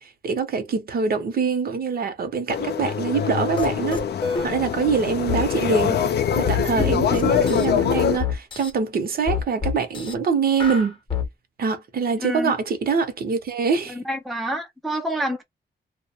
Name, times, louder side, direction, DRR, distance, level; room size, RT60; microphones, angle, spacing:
voice 1, 0.0-4.0 4.4-6.0 6.4-11.0 11.6-14.0, right 5 dB, 55° right, 0.7 m, -24 dB
sound 1, 2.5-8.2, left 8 dB, 65° left, 0.4 m, -24 dB
sound 2, 3.6-3.7 3.9-4.5 5.3-5.5 6.4-7.7 8.2-8.7 9.3-10.1 10.6-11.3, left 7 dB, 25° left, 0.7 m, -26 dB
voice 2, 12.2-12.5 13.9-15.4, equal, ahead, 0.4 m, -28 dB
2.3 x 2.1 x 2.7 m
wide cardioid pair, 145°, 19 cm